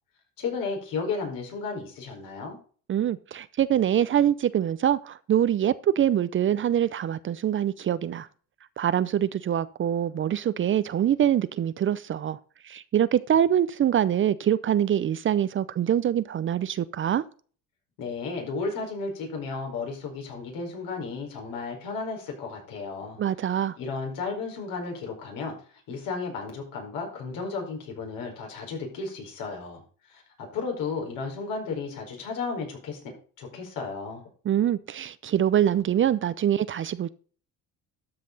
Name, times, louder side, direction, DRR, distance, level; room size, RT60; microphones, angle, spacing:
voice 1, 0.4-2.6 18.0-23.2 23.5-29.8 30.1-30.2 30.5-33.0 33.4-34.2, left 4 dB, 70° left, 5.0 m, -33 dB
voice 2, 2.9-8.3 8.8-12.4 12.6-17.2 23.2-23.8 34.4-37.1, right 10 dB, 35° right, 0.5 m, -24 dB
12.5 x 5.8 x 4.0 m
cardioid pair, 105°, 34 cm